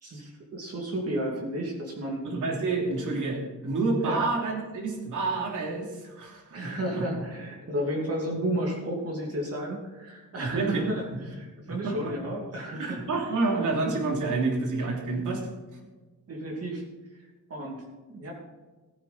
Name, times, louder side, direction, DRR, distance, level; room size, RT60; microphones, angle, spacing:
voice 1, 0.0-2.2 4.0-4.2 6.5-13.3 16.3-16.8 17.5-18.3, right 1 dB, 50° right, -1 dB, 2.6 m, -32 dB
voice 2, 2.2-7.0 10.4-10.8 11.7-12.1 12.8-15.4, right 3 dB, 75° right, 0 dB, 3.1 m, -29 dB
15.5 x 9.4 x 4.3 m, 1.3 s
cardioid pair, 120°, 32 cm